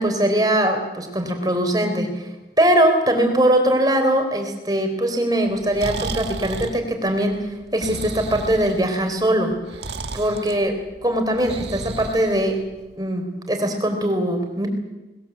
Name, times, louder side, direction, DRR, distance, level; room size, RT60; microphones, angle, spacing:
voice 1, 0.0-2.1 2.6-9.6 10.1-12.6 13.0-14.7, right 1 dB, 20° right, 5 dB, 4.1 m, -21 dB
Breathing, 5.5-12.9, right 3 dB, 75° right, 1.7 m, -34 dB
21.0 x 20.5 x 8.3 m, 1.1 s
head